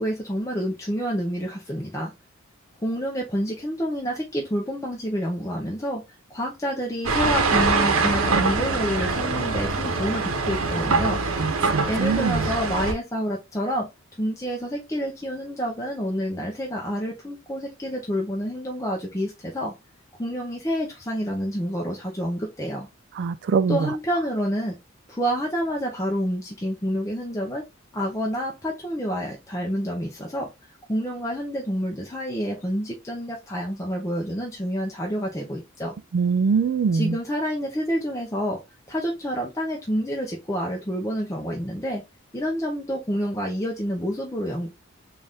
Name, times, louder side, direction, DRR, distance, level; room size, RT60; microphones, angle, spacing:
voice 1, 0.0-2.1 2.8-6.0 6.3-11.2 11.9-13.9 14.2-19.7 20.2-22.9 23.7-24.8 25.1-27.6 27.9-30.5 30.9-35.9 36.9-38.6 38.9-42.0 42.3-44.7, equal, 15° left, 0.7 m, -28 dB
sound 1, 7.0-12.9, right 3 dB, 85° right, 0.9 m, -23 dB
voice 2, 11.4-12.5 23.2-23.9 36.1-37.1, right 5 dB, 55° right, 0.3 m, -23 dB
4.0 x 2.5 x 3.4 m
head